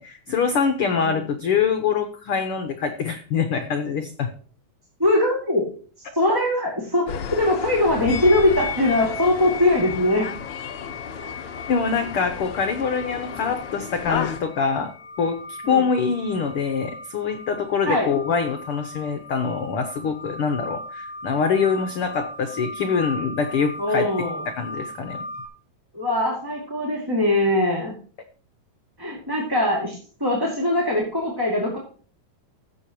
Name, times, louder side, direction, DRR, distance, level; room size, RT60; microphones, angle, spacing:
voice 1, 0.0-4.3 11.7-14.9 15.2-24.1 24.5-25.3, left 6 dB, 90° left, 1.2 m, -24 dB
voice 2, 5.0-5.7 6.0-10.3 11.2-11.3 15.6-15.8 17.8-18.1 23.8-24.4 25.9-27.9 29.0-31.8, left 1 dB, 10° right, 1.8 m, -22 dB
sound 1, 7.1-14.4, left 7 dB, 65° left, 2.2 m, -33 dB
sound 2, 8.1-25.5, left 3 dB, 50° left, 4.2 m, -37 dB
16.5 x 7.6 x 3.0 m
omnidirectional pair, 3.8 m